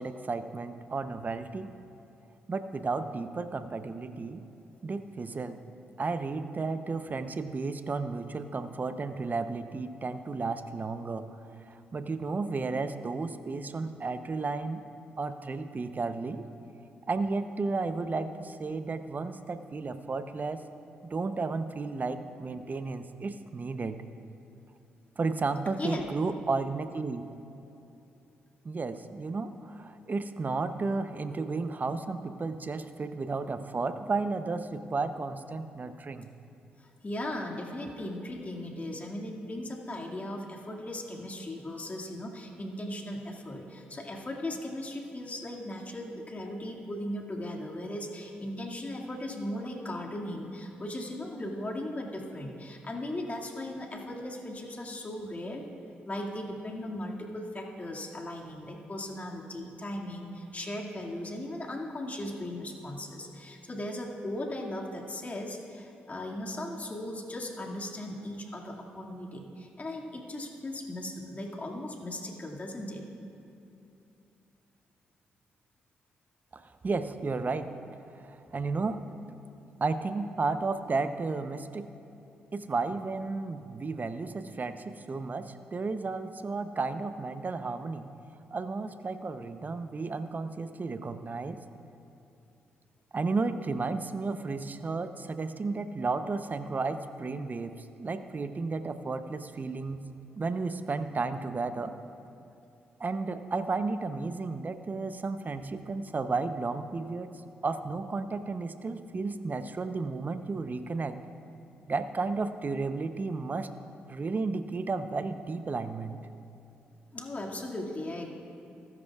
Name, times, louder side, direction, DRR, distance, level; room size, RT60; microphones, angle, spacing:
voice 1, 0.0-1.7 2.5-4.4 4.8-5.6 6.0-11.3 11.7-14.8 15.2-16.5 17.1-20.6 21.0-24.0 25.2-27.2 28.6-36.3 76.5-77.8 78.1-79.0 79.8-81.9 82.5-88.1 88.5-91.6 93.1-100.0 100.4-102.0 103.0-111.2 111.9-113.7 114.1-116.2, right 3 dB, 40° right, 10 dB, 0.7 m, -33 dB
voice 2, 36.8-55.6 56.0-73.0 117.1-118.3, left 1 dB, 35° left, -1 dB, 2.2 m, -37 dB
20.5 x 10.5 x 2.4 m, 2.7 s
hypercardioid pair, 45°, 5 cm